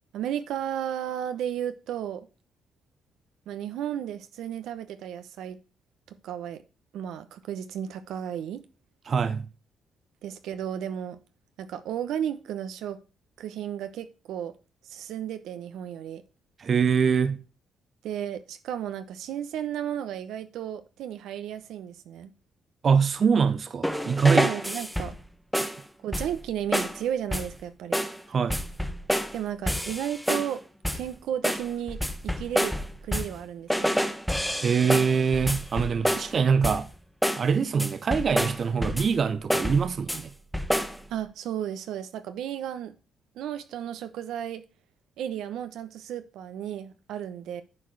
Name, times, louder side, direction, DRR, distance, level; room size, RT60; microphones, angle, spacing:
voice 1, 0.1-2.3 3.5-5.6 6.1-6.6 6.9-8.6 10.2-11.2 11.6-13.0 13.4-14.5 14.8-16.2 18.0-22.3 24.3-25.2 26.0-28.0 29.3-30.6 30.9-32.7 33.0-33.9 41.1-42.9 43.3-44.6 45.2-47.6, right 10 dB, 80° right, 0.9 m, -33 dB
voice 2, 9.1-9.5 16.6-17.4 22.8-24.5 28.3-28.6 34.6-36.9 37.4-40.3, right 6 dB, 45° right, 0.7 m, -24 dB
sound 1, 23.8-25.2 25.5-25.8 26.1-26.5 26.7-27.0 27.3-27.6 27.9-28.2 28.5-29.4 29.7-30.6 30.8-31.1 31.4-33.4 33.7-36.4 36.6-36.9 37.2-37.5 37.8-39.2 39.5-40.2 40.5-41.0, equal, ahead, 0.9 m, -28 dB
9.8 x 4.8 x 4.7 m
cardioid pair, 90°, 0 cm